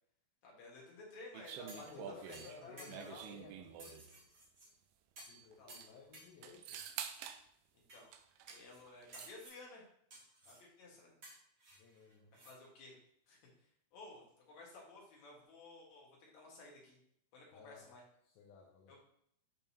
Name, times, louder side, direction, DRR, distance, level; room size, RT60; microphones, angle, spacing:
voice 1, 0.4-2.4 2.6-3.3 5.6-6.0 7.7-8.1 8.4-9.8 10.4-11.1 12.4-13.0 13.3-17.0 17.3-18.0 18.9-19.0, left 2 dB, 60° left, -3 dB, 2.7 m, -55 dB
sound 1, 1.3-4.1 5.2-5.3 5.5-5.9 6.4-7.4 8.1-8.6 8.9-9.4, right 9 dB, 85° right, 2.3 m, -48 dB
voice 2, 1.7-4.3 5.3-6.9 11.8-12.4 17.5-17.9 18.2-19.0, left 5 dB, 75° left, 0 dB, 2.1 m, -57 dB
sound 2, 1.7-2.0 2.3-3.3 3.8-4.7 5.2-5.4 5.7-6.3 6.7-7.2 7.9-8.0 8.5-8.8 9.1-9.6 10.1-10.6 11.2-12.5 12.9-13.0, right 1 dB, 60° right, 0.9 m, -56 dB
7.0 x 5.2 x 2.8 m, 0.70 s
omnidirectional pair, 4.1 m